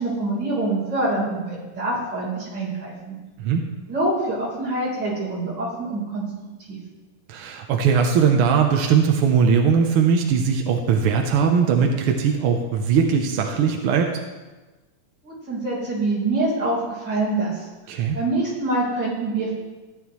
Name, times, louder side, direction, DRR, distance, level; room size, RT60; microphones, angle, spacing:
voice 1, 0.0-3.1 3.9-6.2 6.7-6.8 15.2-17.7 18.1-19.5, right 2 dB, 35° right, -5 dB, 4.5 m, -25 dB
voice 2, 7.3-14.2 17.9-18.2, right 6 dB, 70° right, 2 dB, 1.3 m, -20 dB
15.0 x 10.0 x 3.1 m, 1.2 s
omnidirectional pair, 3.4 m